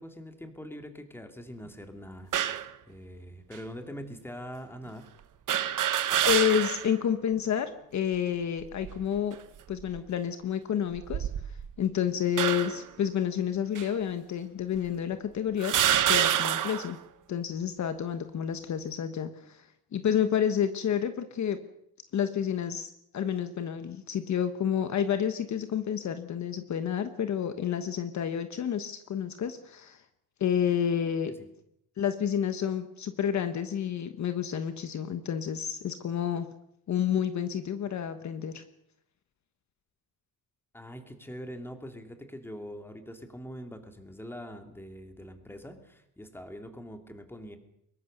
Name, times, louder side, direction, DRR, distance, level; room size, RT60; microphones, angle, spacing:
voice 1, 0.0-2.3 2.9-5.1 40.7-47.6, equal, 5° left, 6 dB, 2.6 m, -43 dB
sound 1, 2.3-2.7 3.5-3.6 5.5-6.9 7.4-7.5 8.6-9.0 9.7-10.0 10.9-11.7 12.4-12.9 13.7-13.9 14.8-14.9 15.6-16.9, right 10 dB, 55° right, 1.4 m, -27 dB
voice 2, 6.3-9.4 9.7-11.3 11.8-15.8 16.1-17.0 17.3-19.7 19.9-21.6 22.1-30.0 30.4-31.3 32.0-36.5 36.9-38.6, left 8 dB, 50° left, 10 dB, 1.3 m, -29 dB
23.5 x 21.5 x 6.7 m, 0.77 s
cardioid pair, 155°, 37 cm